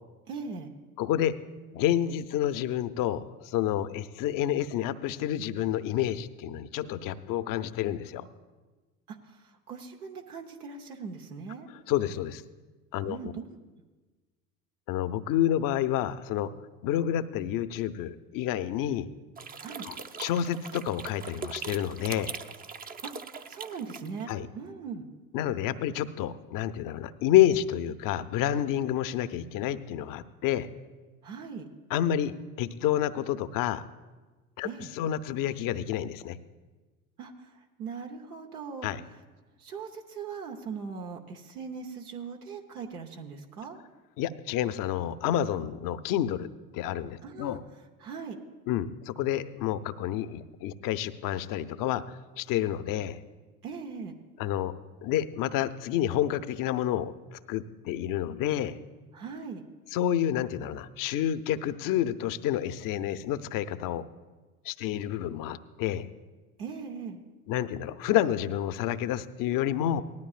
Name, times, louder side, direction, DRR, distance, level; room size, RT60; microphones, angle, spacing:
voice 1, 0.3-0.7 9.1-9.4 9.7-11.7 13.1-13.5 19.6-19.9 23.0-23.1 23.5-24.3 24.5-25.0 31.2-31.6 34.6-34.9 37.2-37.3 37.8-38.9 39.6-43.8 47.2-47.6 48.0-48.4 53.6-54.1 59.1-59.7 66.6-67.2, right 5 dB, 85° right, 2 dB, 1.0 m, -39 dB
voice 2, 1.0-1.4 1.7-8.3 11.9-12.4 12.9-13.3 14.9-16.5 16.8-19.1 19.9-22.3 24.3-24.5 25.3-30.7 31.9-33.8 34.6-36.4 38.8-39.0 44.2-46.5 46.7-47.6 48.7-52.0 52.4-53.2 54.4-54.7 55.0-58.8 59.9-64.1 64.6-66.1 67.5-70.0, left 11 dB, 50° left, 13 dB, 0.7 m, -29 dB
sound 1, 19.4-24.3, right 5 dB, 20° right, 0.6 m, -41 dB
18.5 x 13.0 x 2.5 m, 1.3 s
hypercardioid pair, 70°, 44 cm